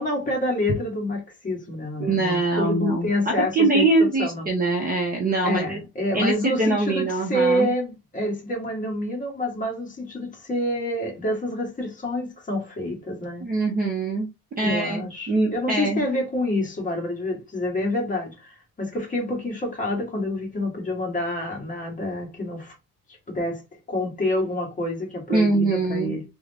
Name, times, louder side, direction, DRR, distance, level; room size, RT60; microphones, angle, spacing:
voice 1, 0.0-4.5 5.4-13.5 14.6-22.7 23.3-23.6 23.9-26.2, left 1 dB, 20° left, 1.2 m, -27 dB
voice 2, 2.0-5.8 6.1-7.7 13.4-14.3 14.6-16.0 25.3-26.2, right 2 dB, 25° right, 0.5 m, -23 dB
3.5 x 2.1 x 3.3 m
cardioid pair, 180°, 40 cm